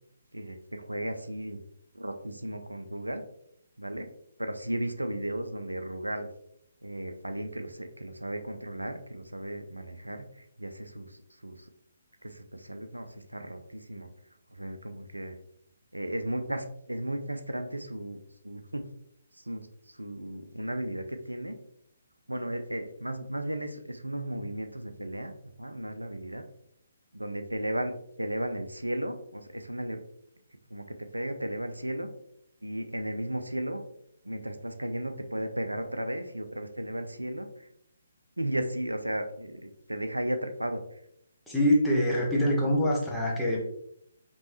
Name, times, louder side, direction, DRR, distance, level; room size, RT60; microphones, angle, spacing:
voice 1, 0.3-1.6 1.9-3.2 3.8-4.1 4.4-6.3 6.8-11.7 12.2-14.1 14.5-15.4 15.9-18.9 19.3-21.5 22.3-25.3 25.6-26.4 27.1-27.9 28.2-30.0 30.7-30.8 31.1-32.1 32.6-33.8 34.2-37.7 38.4-41.0, right 1 dB, 85° right, 7 dB, 0.5 m, -35 dB
voice 2, 41.5-43.6, equal, ahead, -7 dB, 1.1 m, -24 dB
5.2 x 3.1 x 3.0 m, 0.73 s
figure-of-eight pair, 135°, 0 cm